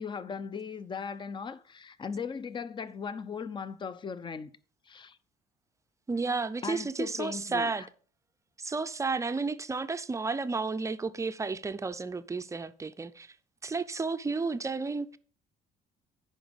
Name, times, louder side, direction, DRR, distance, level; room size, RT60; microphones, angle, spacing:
voice 1, 0.0-4.5 4.9-5.2 6.6-7.9, left 6 dB, 30° left, 0.6 m, -38 dB
voice 2, 6.1-7.8 8.6-13.3 13.6-15.2, right 4 dB, 20° right, 0.5 m, -32 dB
10.0 x 5.2 x 5.1 m
cardioid pair, 110°, 17 cm